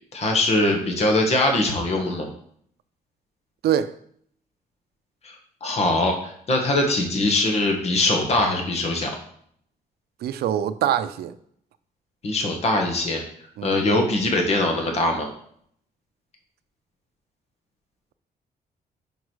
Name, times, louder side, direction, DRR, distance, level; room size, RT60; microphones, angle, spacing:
voice 1, 0.1-2.3 5.2-5.3 5.6-9.1 12.2-13.2 13.6-15.3, left 2 dB, 40° left, 1.5 m, -22 dB
voice 2, 10.2-11.3 13.6-13.8, right 10 dB, 85° right, 0.5 m, -24 dB
5.3 x 4.9 x 6.2 m
cardioid pair, 145°, 16 cm